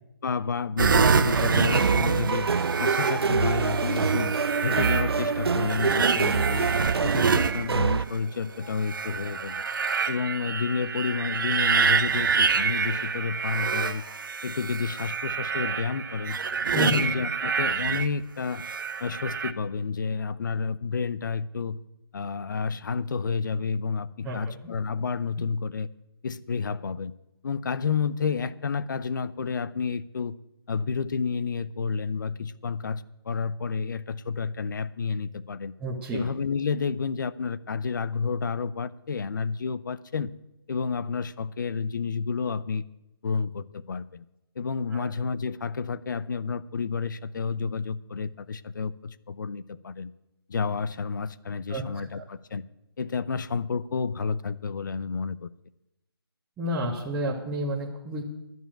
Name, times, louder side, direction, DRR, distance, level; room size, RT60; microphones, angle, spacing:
voice 1, 0.2-2.5 2.8-4.3 4.6-6.7 7.0-9.6 10.1-14.0 14.4-16.4 16.7-18.6 19.0-21.8 22.1-25.9 26.2-27.1 27.4-30.4 30.7-35.7 36.1-40.3 40.7-42.8 43.2-44.2 44.6-50.1 50.5-52.6 53.0-55.5, left 5 dB, 50° left, 17 dB, 0.7 m, -30 dB
sound 1, 0.8-8.2 8.7-18.1 18.5-19.5, right 5 dB, 55° right, 0.9 m, -27 dB
sound 2, 0.9-8.0, right 5 dB, 75° right, 0.5 m, -27 dB
voice 2, 35.8-36.3 44.9-45.1 51.7-52.2 56.6-58.2, equal, 10° right, -5 dB, 1.3 m, -30 dB
11.0 x 7.1 x 8.8 m, 0.91 s
figure-of-eight pair, 155°, 13 cm